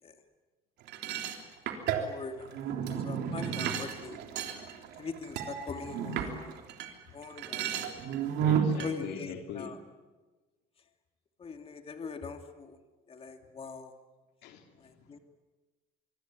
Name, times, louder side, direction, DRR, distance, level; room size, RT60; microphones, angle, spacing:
sound 1, 0.9-6.9 7.2-8.9, right 8 dB, 80° right, 3.3 m, -33 dB
voice 1, 1.9-2.6 2.9-4.2 5.0-6.6 7.1-7.9 8.8-9.8 11.4-12.8 13.1-13.9 14.8-15.2, left 4 dB, 35° left, 2.7 m, -42 dB
voice 2, 8.4-9.8 14.4-15.2, left 6 dB, 90° left, 3.1 m, -42 dB
25.0 x 24.0 x 9.6 m
cardioid pair, 110°, 17 cm